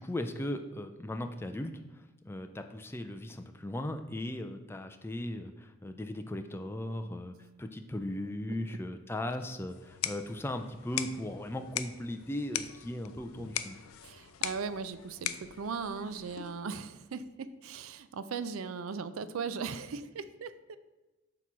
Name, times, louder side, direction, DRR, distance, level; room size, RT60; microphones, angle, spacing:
voice 1, 0.0-13.8, left 1 dB, 10° left, 7 dB, 0.3 m, -38 dB
voice 2, 8.5-8.8 14.0-20.8, right 5 dB, 80° right, 13 dB, 0.4 m, -38 dB
sound 1, 9.7-16.7, left 11 dB, 90° left, 0.4 m, -40 dB
7.8 x 3.0 x 6.0 m, 1.1 s
head